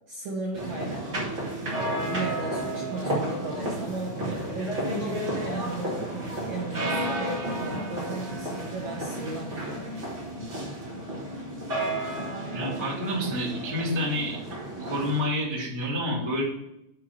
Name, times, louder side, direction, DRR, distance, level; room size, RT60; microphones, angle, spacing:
voice 1, 0.1-1.0 1.7-9.9, right 2 dB, 70° right, -4 dB, 1.7 m, -35 dB
sound 1, 0.5-15.2, right 1 dB, 90° right, 0.6 m, -32 dB
voice 2, 12.5-14.4 14.8-16.4, equal, 25° left, -7 dB, 0.5 m, -28 dB
7.3 x 4.6 x 6.6 m, 0.86 s
omnidirectional pair, 5.1 m